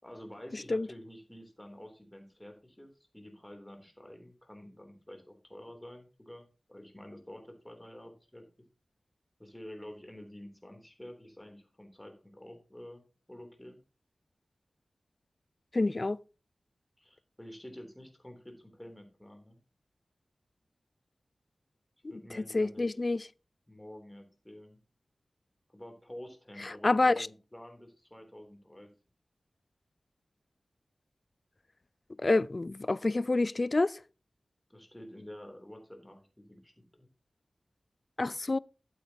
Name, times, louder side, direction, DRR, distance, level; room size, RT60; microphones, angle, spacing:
voice 1, 0.0-8.4 9.4-13.0 13.3-13.8 17.0-19.6 22.1-23.2 23.7-24.8 25.7-28.9 34.7-37.1, left 1 dB, 10° left, 3.3 m, -49 dB
voice 2, 15.7-16.2 22.5-23.2 26.6-27.3 32.2-34.0 38.2-38.6, left 2 dB, 45° left, 0.4 m, -27 dB
13.0 x 8.3 x 2.9 m
wide cardioid pair, 65°, 0 cm